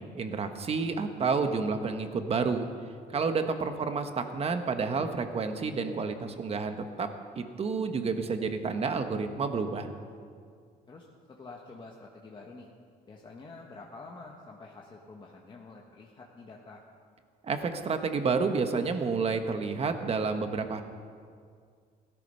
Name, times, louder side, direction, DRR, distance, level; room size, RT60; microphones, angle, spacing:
voice 1, 0.1-2.7 3.1-7.1 7.3-9.9 17.4-20.8, right 4 dB, 35° right, 7 dB, 1.3 m, -30 dB
voice 2, 10.9-12.7 13.1-16.8, left 3 dB, 30° left, -1 dB, 1.5 m, -48 dB
15.5 x 13.5 x 5.6 m, 2.1 s
cardioid pair, 110°, 17 cm